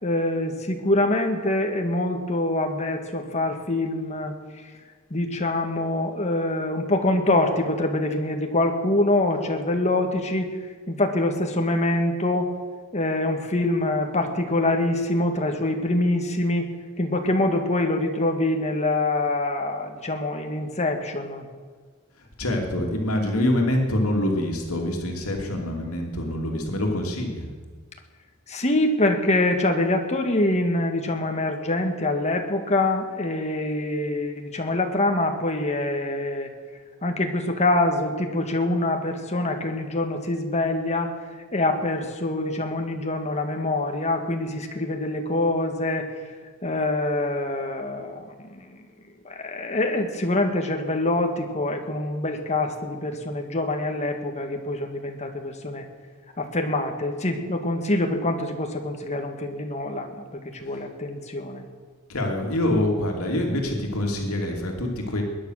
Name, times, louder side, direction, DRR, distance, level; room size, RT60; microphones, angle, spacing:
voice 1, 0.0-4.3 5.1-10.5 10.9-12.5 12.9-16.7 17.0-21.5 28.5-36.5 37.0-41.1 41.5-46.1 46.6-48.8 49.2-55.8 56.4-61.6, left 2 dB, 30° left, 4 dB, 1.7 m, -25 dB
voice 2, 22.4-27.5 62.1-65.2, left 1 dB, 80° left, 1 dB, 2.7 m, -25 dB
21.0 x 9.9 x 6.5 m, 1.5 s
head